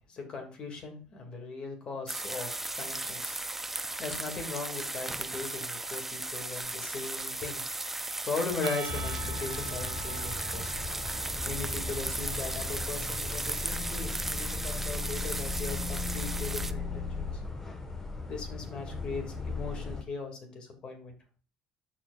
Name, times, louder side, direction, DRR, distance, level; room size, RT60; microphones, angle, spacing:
voice 1, 0.1-3.3 4.0-7.6 8.2-10.7 11.5-17.3 18.3-21.2, left 4 dB, 45° left, 4 dB, 2.3 m, -38 dB
sound 1, 2.1-16.7, right 2 dB, 10° right, 0.5 m, -36 dB
Percussion / Church bell, 8.6-13.2, right 7 dB, 80° right, 1.1 m, -45 dB
sound 2, 8.9-20.0, left 3 dB, 20° left, 1.4 m, -37 dB
12.5 x 4.5 x 2.5 m, 0.37 s
hypercardioid pair, 75°, 2 cm